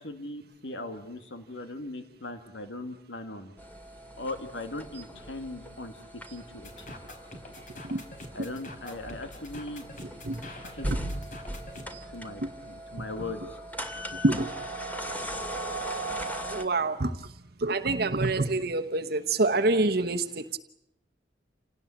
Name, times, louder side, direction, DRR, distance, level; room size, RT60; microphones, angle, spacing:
voice 1, 0.0-3.5 4.2-6.0 6.3-6.9 8.3-9.8 10.7-10.9 12.1-13.6, left 2 dB, 85° left, 2.2 m, -39 dB
sound 1, 3.6-16.6, right 1 dB, 10° left, 2.3 m, -38 dB
sound 2, 6.6-11.9, left 1 dB, 45° left, 4.2 m, -45 dB
voice 2, 14.1-14.7 16.4-20.6, right 2 dB, 60° right, 1.1 m, -27 dB
28.0 x 18.0 x 8.7 m
head